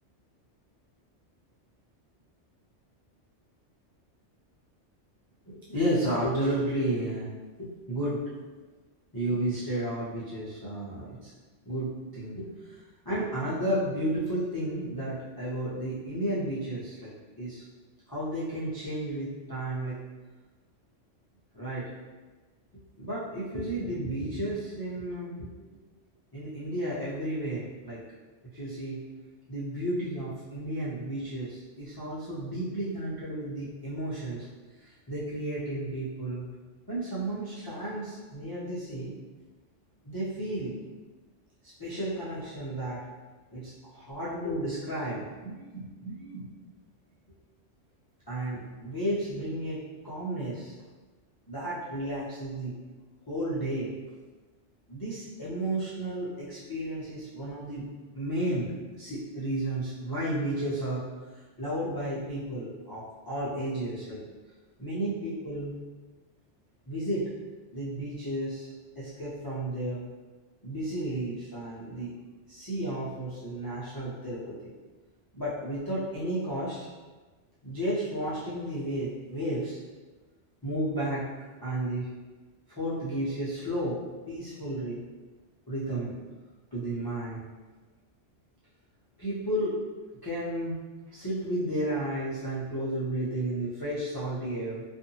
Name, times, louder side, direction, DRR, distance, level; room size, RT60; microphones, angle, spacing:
voice 1, 5.5-7.3 7.6-8.2 9.1-11.3 11.7-17.1 17.4-17.6 18.1-20.0 21.5-21.9 23.0-25.5 26.3-28.0 28.5-29.0 29.5-34.5 34.8-36.5 36.9-39.1 40.0-40.7 41.6-43.0 43.5-46.4 48.3-50.7 51.5-52.7 53.3-53.9 54.9-57.9 58.1-58.7 59.0-61.0 61.3-64.2 64.8-65.8 66.9-67.3 67.7-68.7 69.0-70.0 70.6-72.1 72.5-74.7 75.3-76.9 77.6-79.8 80.6-81.2 81.6-82.1 82.7-85.0 85.7-86.2 86.7-87.4 89.2-89.8 90.2-90.8 91.1-94.8, right 1 dB, 40° left, -10 dB, 0.3 m, -32 dB
2.6 x 2.4 x 2.7 m, 1.3 s
omnidirectional pair, 1.2 m